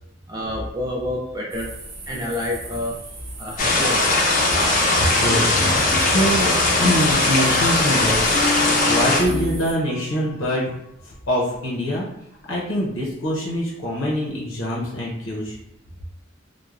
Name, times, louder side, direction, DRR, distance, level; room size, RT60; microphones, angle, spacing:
voice 1, 0.3-1.7 2.1-2.9 3.4-4.2, left 1 dB, 20° right, -2 dB, 0.3 m, -28 dB
sound 1, 1.5-9.8, right 3 dB, 60° right, 0.6 m, -38 dB
sound 2, 3.6-9.2, left 2 dB, 40° left, 0.5 m, -19 dB
voice 2, 5.1-10.7 11.0-12.1 12.5-15.6, equal, 80° left, -4 dB, 0.7 m, -24 dB
sound 3, 5.3-6.1 7.1-7.4 8.0-9.6 9.8-10.4, left 3 dB, 5° left, 0.7 m, -29 dB
3.1 x 2.1 x 2.4 m, 0.80 s
head